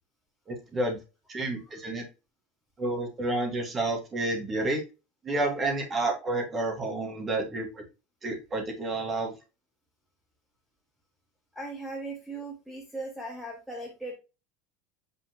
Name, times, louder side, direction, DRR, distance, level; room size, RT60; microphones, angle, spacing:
voice 1, 0.5-1.0 1.3-2.0 2.8-4.8 5.2-7.8 8.2-9.3, right 2 dB, 15° right, 3 dB, 1.7 m, -30 dB
voice 2, 11.5-14.1, right 2 dB, ahead, -1 dB, 1.6 m, -38 dB
8.1 x 4.2 x 2.9 m, 0.28 s
supercardioid pair, 175°, 0 cm